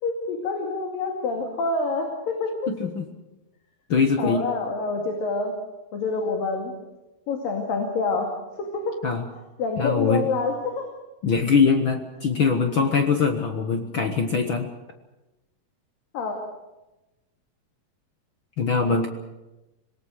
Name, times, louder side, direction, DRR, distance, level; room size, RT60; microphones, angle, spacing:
voice 1, 0.0-2.7 4.2-5.5 5.9-6.7 7.3-8.3 8.6-9.0 9.6-10.9 16.1-16.4, left 3 dB, 75° left, 2 dB, 3.9 m, -27 dB
voice 2, 2.7-3.1 3.9-4.4 9.0-9.2 9.8-10.3 11.2-14.7 18.6-19.1, left 5 dB, 60° left, 5 dB, 1.3 m, -22 dB
26.5 x 18.5 x 6.5 m, 1.0 s
omnidirectional pair, 4.0 m